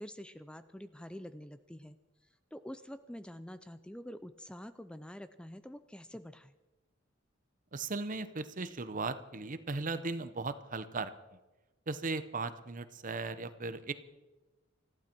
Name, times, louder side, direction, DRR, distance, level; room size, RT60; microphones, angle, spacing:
voice 1, 0.0-2.0 2.5-6.5, equal, 5° left, 12 dB, 0.4 m, -47 dB
voice 2, 7.7-11.1 11.9-13.9, right 3 dB, 40° right, 13 dB, 0.8 m, -37 dB
20.0 x 14.5 x 4.5 m, 1.1 s
head